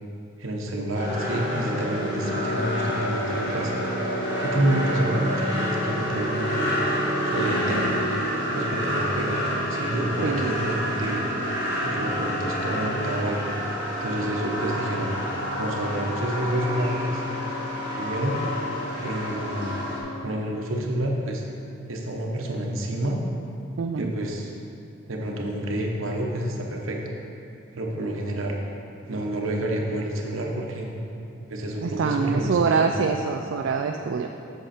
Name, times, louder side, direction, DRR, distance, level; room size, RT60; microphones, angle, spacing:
voice 1, 0.4-3.8 4.4-6.7 7.2-8.0 8.5-9.4 9.7-11.2 11.8-13.5 14.0-15.1 15.6-17.2 18.0-18.4 19.0-19.8 20.2-21.4 21.9-23.2 24.0-24.5 25.1-27.0 27.7-28.6 29.1-30.9 31.5-32.9, right 1 dB, 80° right, 0 dB, 1.1 m, -28 dB
sound 1, 0.9-20.0, equal, 60° left, 1.7 m, -28 dB
voice 2, 10.2-10.5 23.8-24.1 31.8-34.3, right 5 dB, 65° right, 4 dB, 0.3 m, -25 dB
8.0 x 6.8 x 4.3 m, 2.7 s
head